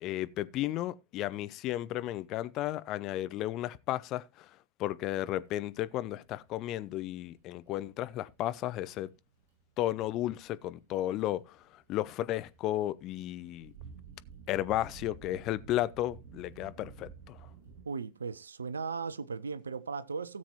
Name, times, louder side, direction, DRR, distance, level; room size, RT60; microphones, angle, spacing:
voice 1, 0.0-4.5 4.8-9.1 9.8-11.6 11.9-13.7 14.5-17.4, left 14 dB, 35° left, 0.6 m, -33 dB
sound 1, 5.3-17.8, right 6 dB, 55° right, 6.7 m, -53 dB
voice 2, 17.9-20.4, right 5 dB, 75° right, 0.6 m, -37 dB
17.0 x 7.5 x 2.9 m
figure-of-eight pair, 90°, 0 cm